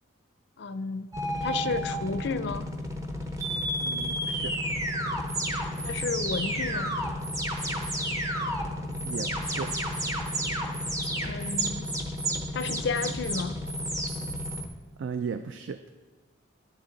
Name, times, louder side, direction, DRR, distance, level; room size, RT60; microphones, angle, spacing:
voice 1, 0.6-1.1 1.4-2.7 5.8-7.0 11.2-11.9 12.5-13.6, left 4 dB, 55° left, 0.4 m, -32 dB
sound 1, 1.1-14.7, equal, 15° right, 0.7 m, -31 dB
voice 2, 3.8-4.6 9.0-9.8 15.0-15.8, right 6 dB, 70° right, 0.3 m, -36 dB
11.0 x 7.0 x 3.9 m
head